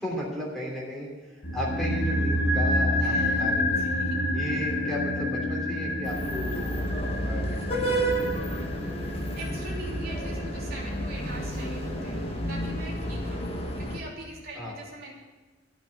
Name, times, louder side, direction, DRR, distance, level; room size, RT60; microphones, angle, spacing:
voice 1, 0.0-3.8 4.3-6.9 7.2-8.7 14.5-14.7, left 1 dB, ahead, -4 dB, 3.1 m, -35 dB
sound 1, 1.4-11.7 11.9-12.0, left 1 dB, 50° left, 1.6 m, -28 dB
voice 2, 3.0-4.2 9.0-15.1, right 1 dB, 50° right, -4 dB, 3.1 m, -43 dB
sound 2, 6.0-14.0, right 1 dB, 30° left, 1.6 m, -31 dB
14.5 x 6.1 x 9.4 m, 1.2 s
head